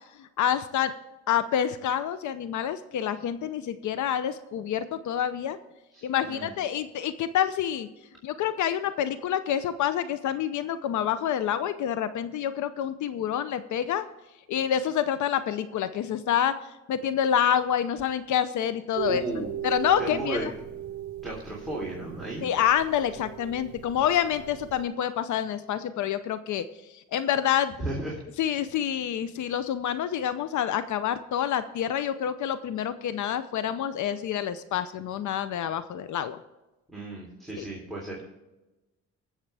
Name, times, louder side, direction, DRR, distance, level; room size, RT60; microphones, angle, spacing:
voice 1, 0.2-0.9 1.3-5.6 6.0-7.9 8.2-14.0 14.5-16.5 16.9-19.2 19.6-20.5 22.4-26.7 26.9-27.8 28.4-36.4, left 9 dB, 75° left, 13 dB, 0.7 m, -27 dB
voice 2, 5.9-6.5 19.0-19.5 20.0-20.5 21.2-22.5 27.8-28.2 36.9-38.3, right 1 dB, ahead, -3 dB, 3.3 m, -34 dB
sound 1, 18.9-24.9, right 11 dB, 70° right, 0.7 m, -38 dB
20.0 x 7.3 x 3.4 m, 1.0 s
cardioid pair, 90°, 30 cm